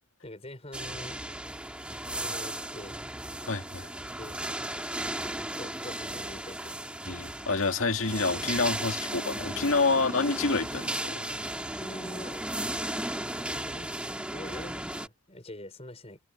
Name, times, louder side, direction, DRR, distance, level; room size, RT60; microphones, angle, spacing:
voice 1, 0.2-1.2 2.1-3.0 4.2-4.4 5.5-7.0 9.9-10.0 11.7-12.5 13.2-16.2, left 1 dB, 30° left, 5.0 m, -45 dB
sound 1, 0.7-15.1, right 1 dB, 5° right, 1.8 m, -35 dB
voice 2, 3.4-3.9 7.1-11.3, left 3 dB, 75° left, 2.2 m, -28 dB
head